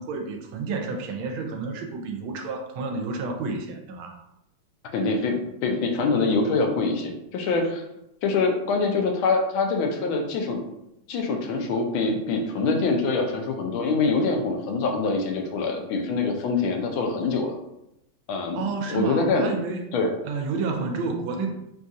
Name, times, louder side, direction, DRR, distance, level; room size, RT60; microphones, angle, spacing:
voice 1, 0.0-4.2 18.5-19.9 20.2-21.5, right 4 dB, 90° right, 4 dB, 1.4 m, -30 dB
voice 2, 4.9-5.3 5.6-7.8 8.2-10.6 11.1-17.6 18.3-18.6 18.9-19.5 19.9-20.1, left 3 dB, 80° left, 3 dB, 1.4 m, -24 dB
3.8 x 2.4 x 2.6 m, 0.84 s
omnidirectional pair, 2.2 m